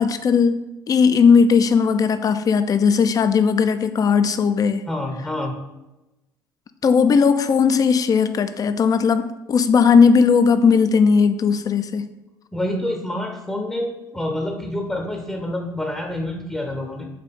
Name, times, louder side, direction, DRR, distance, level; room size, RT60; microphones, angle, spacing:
voice 1, 0.0-4.8 6.8-12.1, left 5 dB, 35° left, 11 dB, 0.5 m, -17 dB
voice 2, 4.9-5.6 12.5-17.0, left 1 dB, 5° left, 2 dB, 0.8 m, -27 dB
5.1 x 4.0 x 5.5 m, 1.0 s
figure-of-eight pair, 55°, 11 cm